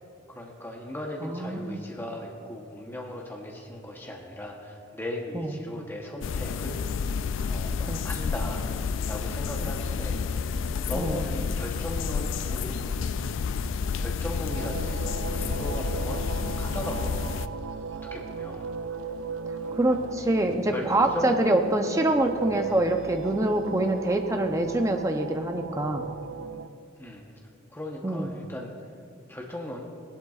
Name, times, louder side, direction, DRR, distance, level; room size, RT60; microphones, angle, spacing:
voice 1, 0.3-6.8 7.4-10.6 10.9-13.3 14.0-16.2 16.6-17.3 17.9-18.7 19.5-20.0 20.7-20.8 21.1-21.6 27.0-27.2 27.7-28.7 29.3-29.8, left 1 dB, 10° left, -1 dB, 0.9 m, -37 dB
voice 2, 1.2-1.8 5.3-5.5 7.9-8.0 9.6-9.7 10.9-11.2 19.7-26.1 28.0-28.3, right 1 dB, 15° right, 5 dB, 0.6 m, -25 dB
sound 1, 6.2-17.5, left 5 dB, 65° left, 0.3 m, -30 dB
sound 2, 14.5-26.7, right 5 dB, 70° right, 0.4 m, -36 dB
17.0 x 11.5 x 2.4 m, 2.4 s
head